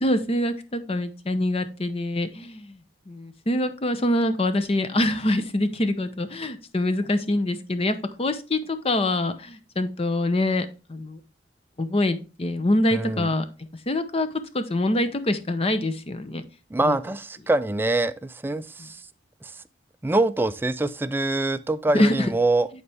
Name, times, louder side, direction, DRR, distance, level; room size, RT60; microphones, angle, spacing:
voice 1, 0.0-2.8 3.1-11.2 11.8-13.4 13.9-14.3 14.5-16.4 16.9-17.0 18.5-18.9 21.9-22.3, left 1 dB, 35° left, 0.7 m, -25 dB
voice 2, 12.9-13.3 16.7-19.0 19.4-19.5 20.0-22.7, right 2 dB, 10° right, 0.3 m, -24 dB
9.7 x 4.3 x 3.4 m
head